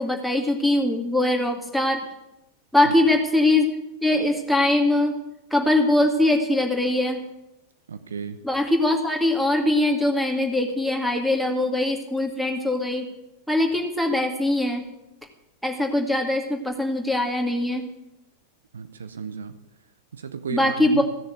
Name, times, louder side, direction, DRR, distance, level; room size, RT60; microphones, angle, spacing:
voice 1, 0.0-2.0 2.7-3.7 4.0-5.2 5.5-7.2 8.4-13.1 13.5-14.9 15.6-17.9 20.5-21.0, left 1 dB, ahead, 3 dB, 2.3 m, -22 dB
voice 2, 7.9-8.4 18.7-19.6 20.1-21.1, right 6 dB, 70° right, 11 dB, 0.9 m, -34 dB
16.0 x 6.8 x 9.3 m, 0.92 s
figure-of-eight pair, 90°, 0 cm